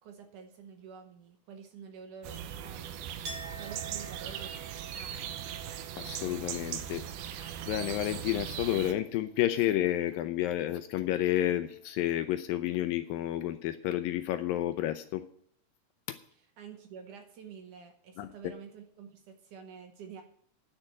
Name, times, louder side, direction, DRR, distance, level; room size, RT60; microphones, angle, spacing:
voice 1, 0.0-3.0 3.3-5.6 16.3-20.2, right 6 dB, 65° right, 5 dB, 2.3 m, -49 dB
sound 1, 2.2-8.9, right 9 dB, 85° right, 2.8 m, -39 dB
Chink clink, 3.2-8.8 9.1-9.9, right 4 dB, 50° right, 2.7 m, -49 dB
voice 2, 6.0-7.0 7.3-15.3 16.1-16.2 18.2-18.3, left 13 dB, 80° left, 10 dB, 2.2 m, -30 dB
9.9 x 6.5 x 9.0 m, 0.63 s
omnidirectional pair, 4.4 m